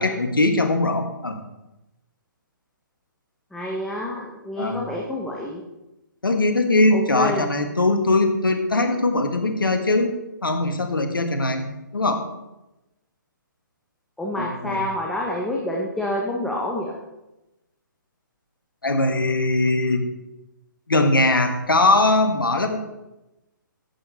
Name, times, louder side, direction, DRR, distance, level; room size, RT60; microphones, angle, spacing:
voice 1, 0.0-1.4 4.6-4.9 6.2-10.1 10.4-11.6 11.9-12.2 14.4-14.8 18.8-20.0 20.9-22.8, left 2 dB, 80° left, 6 dB, 1.6 m, -21 dB
voice 2, 3.5-5.6 6.9-7.5 14.2-17.0, left 1 dB, 5° left, -3 dB, 1.1 m, -28 dB
11.0 x 8.3 x 4.2 m, 0.96 s
figure-of-eight pair, 130°, 11 cm